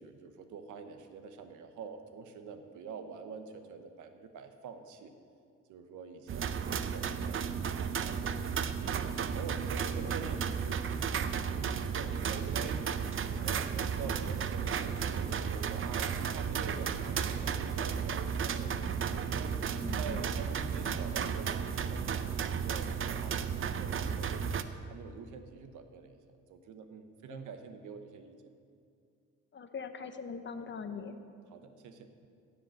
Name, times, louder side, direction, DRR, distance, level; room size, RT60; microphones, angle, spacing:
voice 1, 0.0-5.1 5.7-11.7 11.9-12.8 13.2-19.6 20.0-24.6 24.9-26.2 26.5-28.4 31.5-32.1, right 5 dB, 80° right, 8 dB, 1.0 m, -46 dB
sound 1, 6.3-24.6, right 7 dB, 45° right, 0.6 m, -33 dB
voice 2, 19.8-20.2 27.3-27.4 29.5-31.1, left 5 dB, 40° left, 8 dB, 0.9 m, -42 dB
15.5 x 5.4 x 7.7 m, 2.4 s
cardioid pair, 90°, 30 cm